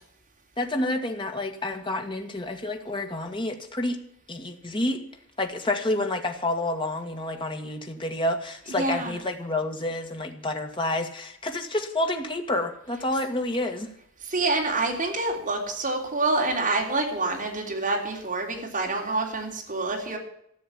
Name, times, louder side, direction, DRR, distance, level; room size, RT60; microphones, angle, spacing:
voice 1, 0.6-4.0 4.3-5.0 5.4-13.9, left 1 dB, 25° left, 4 dB, 1.8 m, -29 dB
voice 2, 8.7-9.2 14.2-20.2, right 3 dB, 40° right, 1 dB, 3.5 m, -27 dB
14.5 x 6.6 x 10.0 m, 0.72 s
head